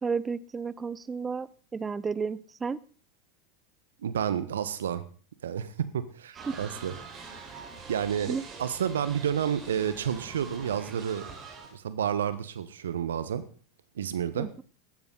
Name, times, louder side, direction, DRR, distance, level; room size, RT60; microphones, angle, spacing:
voice 1, 0.0-2.8 6.5-6.6 8.3-8.4 14.4-14.6, right 5 dB, 20° right, 19 dB, 0.8 m, -32 dB
voice 2, 4.0-5.0 5.4-7.2 7.9-11.2 11.7-13.4 13.9-14.5, right 8 dB, 75° right, 14 dB, 1.4 m, -30 dB
sound 1, 6.3-11.7, right 4 dB, 35° right, 5.1 m, -44 dB
16.0 x 12.5 x 4.1 m, 0.41 s
figure-of-eight pair, 85°, 0 cm